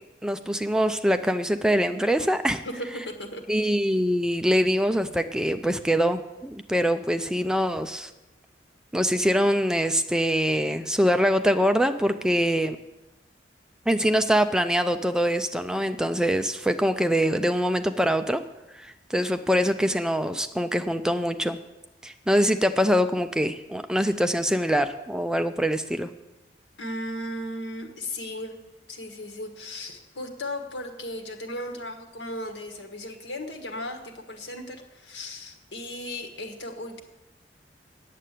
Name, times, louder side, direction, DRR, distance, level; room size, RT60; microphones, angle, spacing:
voice 1, 0.2-2.6 3.5-8.1 8.9-12.8 13.9-18.4 18.7-21.6 22.0-26.1, equal, 5° right, 9 dB, 0.4 m, -24 dB
voice 2, 2.6-3.7 26.8-28.6 28.9-37.0, left 1 dB, 80° left, 4 dB, 1.6 m, -36 dB
9.2 x 7.6 x 8.3 m, 1.0 s
head